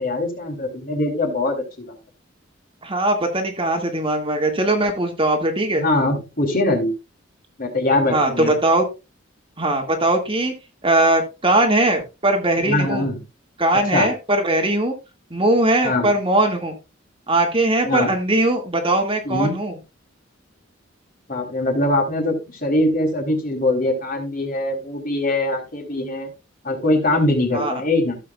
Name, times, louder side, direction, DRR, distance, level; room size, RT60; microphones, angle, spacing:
voice 1, 0.0-2.0 5.8-6.9 7.6-8.5 12.7-13.2 13.9-14.1 15.8-16.1 17.8-18.1 19.3-19.6 21.3-26.3 26.6-28.2, left 2 dB, 45° left, 2 dB, 3.7 m, -22 dB
voice 2, 2.8-5.9 8.1-8.8 9.6-10.5 10.8-13.1 13.6-14.9 15.3-16.8 17.3-19.7 27.5-27.7, right 1 dB, 25° right, 3 dB, 2.0 m, -20 dB
15.5 x 7.4 x 2.3 m, 0.26 s
head